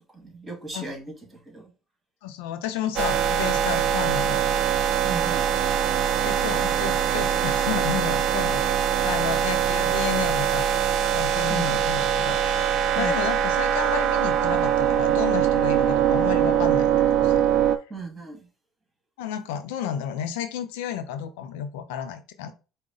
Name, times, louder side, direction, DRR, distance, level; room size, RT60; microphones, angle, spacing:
voice 1, 0.1-1.7 5.0-5.5 11.5-11.8 12.9-13.2 17.9-18.5, right 4 dB, 15° right, 1.9 m, -36 dB
voice 2, 2.2-4.4 6.2-8.6 9.0-10.7 11.1-17.5 19.2-22.5, left 9 dB, 80° left, 0.5 m, -32 dB
sound 1, 3.0-17.8, right 9 dB, 60° right, 0.4 m, -22 dB
4.8 x 2.1 x 3.9 m
supercardioid pair, 85°, 0 cm